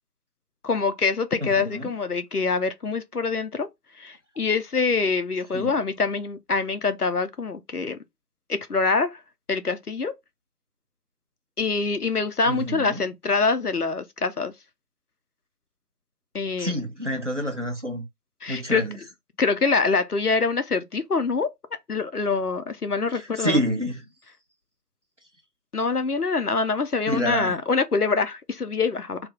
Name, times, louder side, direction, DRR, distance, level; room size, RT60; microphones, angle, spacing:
voice 1, 0.6-3.7 4.0-8.0 8.5-9.2 9.5-10.1 11.6-14.5 16.3-16.7 18.4-18.8 19.4-21.5 21.9-23.6 25.7-29.2, left 4 dB, 65° left, 0.6 m, -25 dB
voice 2, 1.4-1.9 5.5-5.7 12.5-13.0 16.6-18.0 18.5-19.0 23.1-24.0 27.1-27.6, equal, 45° right, 0.9 m, -28 dB
3.3 x 2.2 x 3.4 m
figure-of-eight pair, 180°, 49 cm